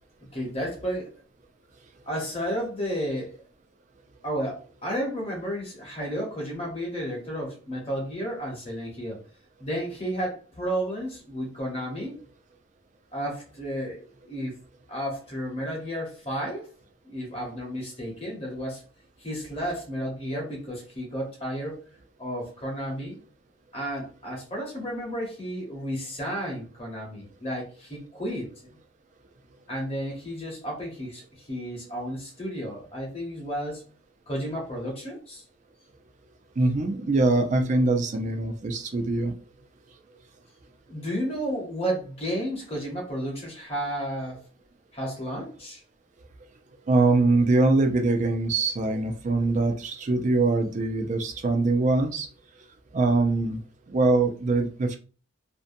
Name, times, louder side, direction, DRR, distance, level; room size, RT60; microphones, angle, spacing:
voice 1, 0.3-1.1 2.1-3.4 4.2-9.2 9.6-12.2 13.1-14.5 14.9-16.7 17.0-18.8 19.2-21.8 22.2-23.2 23.7-28.5 29.7-33.8 34.3-35.4 40.9-44.4 44.9-45.8, equal, 30° left, -1 dB, 0.9 m, -32 dB
voice 2, 36.6-39.3 46.9-52.3 52.9-53.6 53.9-55.0, right 3 dB, 35° right, 5 dB, 0.4 m, -23 dB
2.5 x 2.1 x 2.6 m, 0.36 s
head